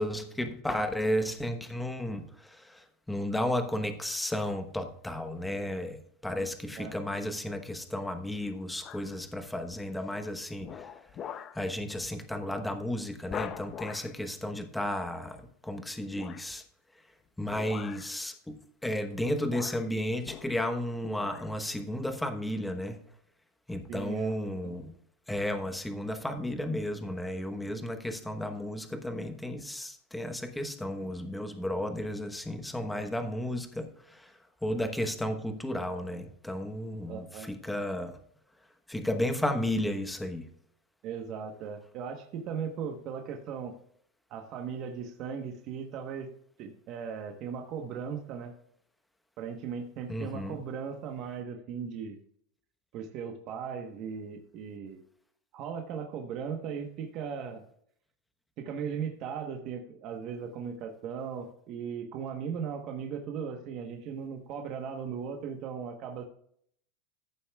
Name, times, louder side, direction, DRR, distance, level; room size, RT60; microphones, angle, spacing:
voice 1, 0.0-10.9 11.5-16.6 17.4-23.0 23.7-25.0 25.3-34.3 34.6-38.2 38.9-40.5 50.1-50.6, left 1 dB, 5° left, 7 dB, 1.0 m, -33 dB
sound 1, 8.8-9.2 9.7-10.1 10.6-11.6 12.0-12.2 12.6-12.7 13.3-14.2 16.1-16.6 17.5-18.2 19.0-19.2 19.5-20.8 21.1-21.5 22.0-22.1, left 8 dB, 30° left, 0.6 m, -43 dB
voice 2, 23.9-24.4 24.6-24.7 37.1-37.5 41.0-43.7 44.3-46.3 46.6-48.5 49.4-52.2 52.9-55.0 55.5-57.6 58.6-66.3, right 7 dB, 40° right, 3 dB, 1.1 m, -37 dB
14.5 x 7.1 x 2.3 m, 0.65 s
supercardioid pair, 150°, 0 cm